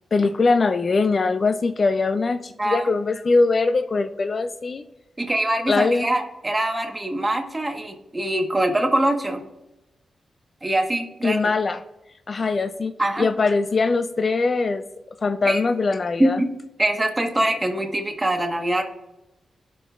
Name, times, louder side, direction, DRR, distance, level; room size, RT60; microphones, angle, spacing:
voice 1, 0.1-4.8 5.7-6.1 11.2-11.8 12.3-12.9 13.2-14.8 15.2-16.4, left 3 dB, 50° left, 10 dB, 0.4 m, -21 dB
voice 2, 5.2-9.4 10.6-11.5 13.0-13.3 15.4-15.6 16.2-16.5 16.8-18.8, right 1 dB, 20° right, 3 dB, 1.3 m, -23 dB
17.0 x 6.0 x 2.4 m, 0.97 s
cardioid pair, 65°, 0 cm